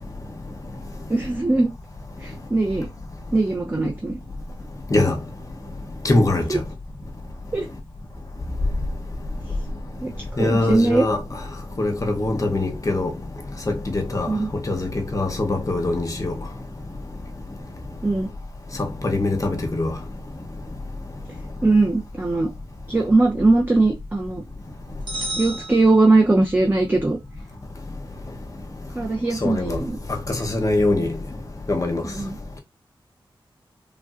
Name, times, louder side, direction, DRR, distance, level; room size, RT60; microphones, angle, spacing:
voice 1, 1.1-1.7 2.2-2.9 3.3-4.2 6.5-6.6 7.5-7.7 9.5-9.6 10.0-11.0 14.3-14.5 18.0-18.3 21.6-22.5 22.9-24.4 25.4-27.2 28.9-30.0 32.0-32.4, right 2 dB, 20° right, 0.5 m, -20 dB
voice 2, 6.0-6.6 10.4-11.2 11.8-13.1 13.7-14.3 14.7-16.3 19.0-19.9 29.4-29.8 30.3-31.1 31.7-32.0, left 2 dB, 35° left, 0.8 m, -22 dB
sound 1, 25.1-26.6, right 2 dB, 60° right, 0.9 m, -33 dB
3.2 x 2.6 x 2.4 m
wide cardioid pair, 80°, 9 cm